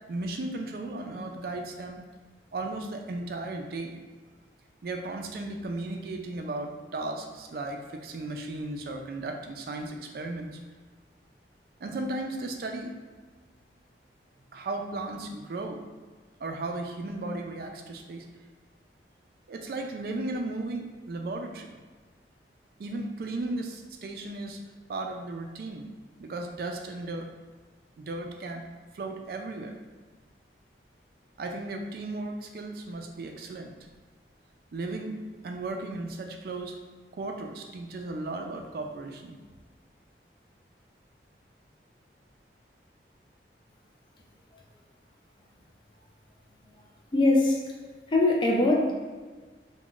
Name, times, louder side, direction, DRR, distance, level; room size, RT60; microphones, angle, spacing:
voice 1, 0.1-2.0 2.5-4.0 4.8-10.6 11.8-12.9 14.5-15.8 16.4-18.3 19.5-21.8 22.8-24.6 24.9-25.9 26.2-27.3 28.0-28.6 28.9-29.7 31.4-33.7 34.7-35.2 35.4-36.8 37.1-39.4, right 2 dB, 55° right, 3 dB, 0.3 m, -35 dB
voice 2, 47.1-47.6 48.1-48.9, left 2 dB, 25° left, -1 dB, 0.3 m, -22 dB
2.4 x 2.1 x 3.6 m, 1.4 s
head